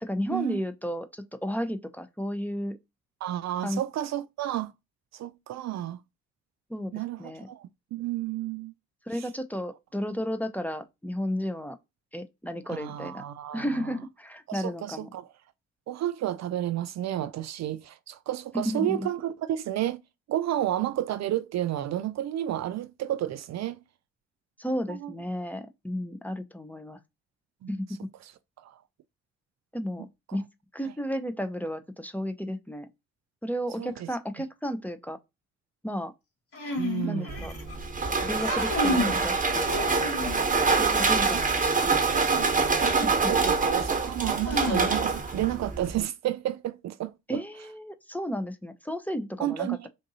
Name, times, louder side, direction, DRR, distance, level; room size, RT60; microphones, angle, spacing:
voice 1, 0.0-2.8 3.6-3.8 6.7-6.9 7.2-7.5 9.1-11.8 12.1-13.2 13.5-15.1 18.5-19.1 24.6-27.0 27.7-28.1 29.7-30.4 30.7-32.9 33.4-35.2 35.8-36.1 37.0-37.5 38.2-39.9 40.8-42.0 43.0-43.1 47.3-49.8, equal, 5° left, 0.6 m, -33 dB
voice 2, 3.2-4.7 5.1-6.0 6.9-8.7 9.1-9.3 12.7-13.7 14.5-15.3 15.9-20.0 20.3-23.8 24.9-25.1 27.6-27.7 28.2-28.3 28.6-28.8 30.3-30.4 33.8-34.1 36.8-37.5 41.1-41.4 41.8-42.5 42.8-47.4 49.4-49.9, right 12 dB, 55° right, 0.4 m, -31 dB
sound 1, 36.5-37.7 38.3-39.2 39.7-40.6 42.5-42.6 44.4-45.3, left 1 dB, 45° left, 2.2 m, -31 dB
sound 2, 37.3-46.0, right 4 dB, 25° right, 1.2 m, -25 dB
3.7 x 2.6 x 4.0 m
supercardioid pair, 55°, 33 cm